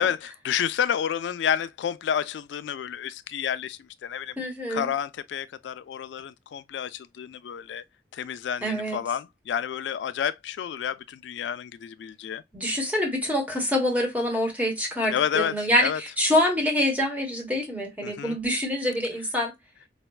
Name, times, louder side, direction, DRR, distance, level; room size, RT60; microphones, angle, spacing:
voice 1, 0.0-4.3 4.7-7.8 8.1-12.4 15.1-16.0 18.0-18.4, left 8 dB, 90° left, 0.3 m, -30 dB
voice 2, 4.4-4.9 8.6-9.0 12.5-19.5, left 1 dB, 10° right, 1.1 m, -26 dB
4.2 x 2.2 x 2.2 m
head